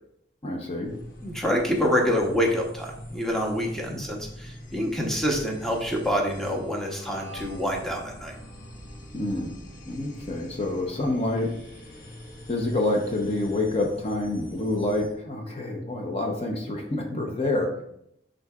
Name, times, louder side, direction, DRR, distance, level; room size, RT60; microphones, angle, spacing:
voice 1, 0.4-0.9 3.9-4.0 9.1-9.5 9.8-11.5 11.9-12.0 12.5-17.8, left 2 dB, 30° left, 2 dB, 0.8 m, -27 dB
sound 1, 0.8-15.2, equal, 50° left, 1.3 m, -43 dB
voice 2, 1.2-8.3, equal, ahead, -1 dB, 0.9 m, -26 dB
11.0 x 3.9 x 2.4 m, 0.74 s
head